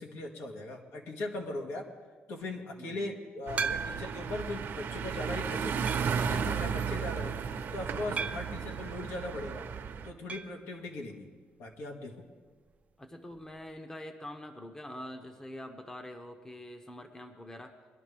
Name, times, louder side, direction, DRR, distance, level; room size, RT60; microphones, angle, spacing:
voice 1, 0.0-1.9 2.3-7.4 7.7-9.6 10.0-11.3 11.6-12.2, left 2 dB, 75° left, 1 dB, 1.9 m, -39 dB
voice 2, 2.8-3.2 13.0-17.8, left 1 dB, 15° left, 6 dB, 0.9 m, -45 dB
sound 1, 3.5-10.1, right 6 dB, 55° right, 0.9 m, -34 dB
sound 2, 3.6-4.3 4.9-5.0 5.9-6.3 8.2-8.6 10.3-10.6 10.9-11.0 11.2-11.3 13.3-13.4, right 5 dB, 35° right, 0.6 m, -36 dB
21.5 x 11.5 x 3.4 m, 1.5 s
cardioid pair, 130°, 4 cm